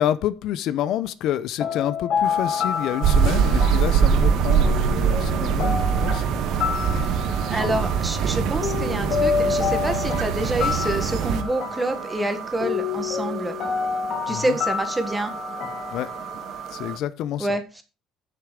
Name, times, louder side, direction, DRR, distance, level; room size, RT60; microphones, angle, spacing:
voice 1, 0.0-6.2 6.7-7.1 7.5-7.8 14.3-14.4 15.9-16.1 16.7-17.5, left 11 dB, 65° left, 0.7 m, -28 dB
sound 1, 1.6-16.6, left 7 dB, 50° left, 1.9 m, -29 dB
sound 2, 2.2-17.0, right 8 dB, 45° right, 2.1 m, -36 dB
sound 3, 3.0-11.4, right 7 dB, 65° right, 1.4 m, -22 dB
voice 2, 7.5-13.6 14.3-15.3 17.4-17.8, right 1 dB, 10° right, 1.7 m, -27 dB
8.5 x 6.8 x 6.3 m
cardioid pair, 135°, 0 cm